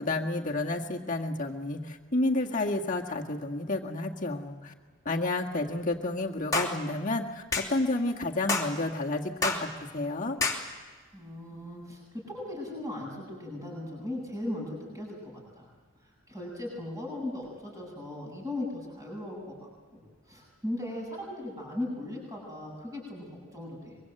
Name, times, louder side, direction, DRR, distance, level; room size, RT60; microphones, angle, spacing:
voice 1, 0.0-4.7 5.1-10.4, left 2 dB, 35° left, 1 dB, 1.9 m, -30 dB
sound 1, 6.5-6.7 7.5-7.7 8.5-8.7 9.4-9.6 10.4-10.6, left 3 dB, 15° left, 3.1 m, -27 dB
voice 2, 11.1-15.7 16.0-24.0, left 1 dB, 15° right, -2 dB, 7.9 m, -38 dB
24.5 x 23.5 x 8.0 m, 1.5 s
head